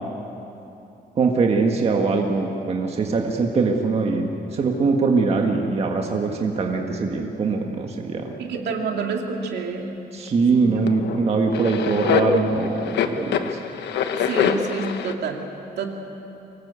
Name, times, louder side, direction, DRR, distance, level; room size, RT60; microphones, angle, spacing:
voice 1, 1.2-8.2 10.1-13.5, right 4 dB, 35° right, 2 dB, 1.7 m, -22 dB
voice 2, 8.4-9.9 10.6-10.8 14.1-15.4 15.8-15.9, right 5 dB, 75° right, 2 dB, 2.5 m, -28 dB
sound 1, 10.3-10.4 10.9-15.1, left 7 dB, 90° left, 1.2 m, -24 dB
25.0 x 19.0 x 8.3 m, 2.9 s
cardioid pair, 170°, 17 cm